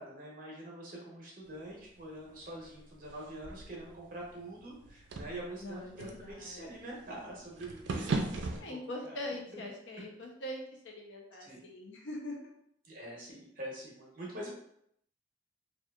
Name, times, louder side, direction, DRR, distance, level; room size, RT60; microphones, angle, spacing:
voice 1, 0.0-8.8 9.0-9.2 9.5-9.6 11.4-11.6 12.8-14.5, right 1 dB, 50° right, -3 dB, 0.8 m, -45 dB
sound 1, 1.5-8.6, right 3 dB, 80° right, 0.4 m, -40 dB
voice 2, 5.6-6.7 8.6-12.5, left 1 dB, 85° left, 1 dB, 0.6 m, -42 dB
2.8 x 2.3 x 2.3 m, 0.72 s
head